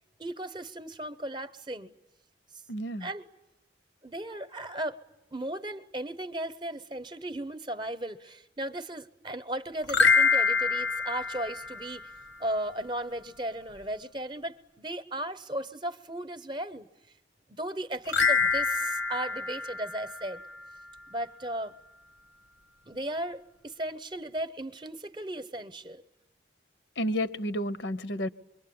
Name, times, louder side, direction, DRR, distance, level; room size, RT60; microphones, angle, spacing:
voice 1, 0.2-1.9 3.0-3.3 4.0-5.0 5.3-12.0 12.4-16.9 17.5-20.4 21.1-21.7 22.9-26.0, right 1 dB, 25° right, 0.9 m, -36 dB
voice 2, 2.7-3.1 27.0-28.3, equal, 65° left, 0.8 m, -31 dB
sound 1, 9.8-12.3 18.1-20.7, left 5 dB, 85° left, 1.2 m, -26 dB
25.5 x 23.0 x 8.7 m
head